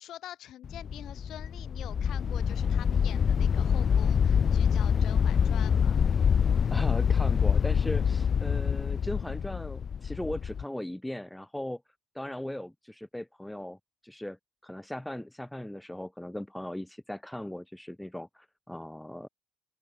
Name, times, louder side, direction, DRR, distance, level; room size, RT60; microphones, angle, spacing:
voice 1, 0.0-6.0, left 12 dB, 65° left, 7.6 m, -46 dB
sound 1, 0.6-10.6, left 7 dB, 50° left, 0.7 m, -26 dB
voice 2, 6.7-11.8 12.1-13.8 14.0-14.4 14.6-19.3, left 1 dB, 5° left, 2.2 m, -38 dB
open air
supercardioid pair, 65°, 0 cm